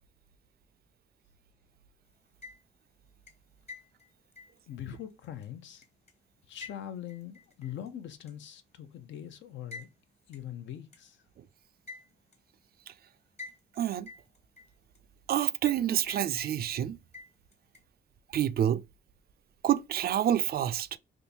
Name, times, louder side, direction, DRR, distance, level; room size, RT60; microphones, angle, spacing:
sound 1, 2.2-2.9 3.3-6.1 6.6-7.9 8.3-8.4 9.7-9.9 10.3-10.4 10.9-11.0 11.9-12.4 13.4-13.8 14.1-15.0 15.6-15.8 16.1-16.8 17.1-17.8, left 4 dB, 35° left, 1.1 m, -48 dB
voice 1, 4.7-5.8 6.5-9.9 10.3-11.2, left 10 dB, 70° left, 0.6 m, -42 dB
voice 2, 13.8-14.1 15.3-17.0 18.3-18.8 19.6-21.0, right 10 dB, 50° right, 0.4 m, -28 dB
3.6 x 2.6 x 2.7 m
cardioid pair, 90°, 20 cm